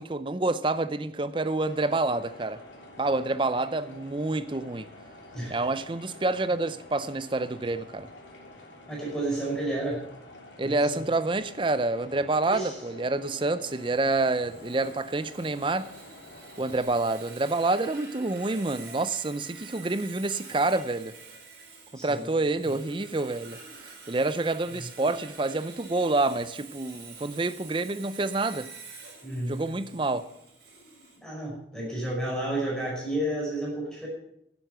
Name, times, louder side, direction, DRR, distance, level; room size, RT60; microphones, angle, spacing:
voice 1, 0.0-2.6 3.0-4.9 5.5-8.1 10.6-15.9 16.6-21.1 21.9-28.7 29.5-30.3, right 2 dB, 25° right, 0.5 m, -28 dB
sound 1, 1.6-16.8, left 1 dB, 90° left, 3.1 m, -49 dB
voice 2, 5.3-5.7 8.9-10.1 10.6-10.9 12.5-12.8 21.9-22.3 22.6-22.8 24.7-24.9 29.2-29.7 31.2-34.1, right 1 dB, 5° left, 5.1 m, -31 dB
Sawing, 13.7-31.2, right 4 dB, 60° right, 4.4 m, -48 dB
10.5 x 9.2 x 6.7 m
head